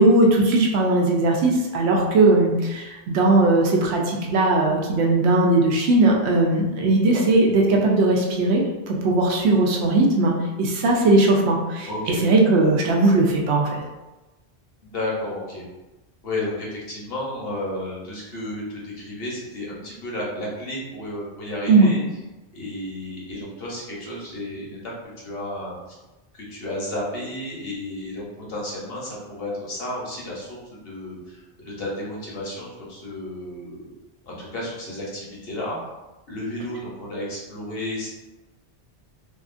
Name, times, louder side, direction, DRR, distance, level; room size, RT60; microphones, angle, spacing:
voice 1, 0.0-11.9 12.2-13.8 21.7-21.9, right 2 dB, 75° right, -1 dB, 0.8 m, -18 dB
voice 2, 11.9-12.2 14.8-15.6 16.2-22.0 22.5-24.9 25.2-25.8 26.3-30.6 30.8-33.9 34.3-35.8 36.3-38.1, left 1 dB, 60° left, -5 dB, 1.0 m, -32 dB
2.8 x 2.4 x 2.4 m, 1.1 s
omnidirectional pair, 1.1 m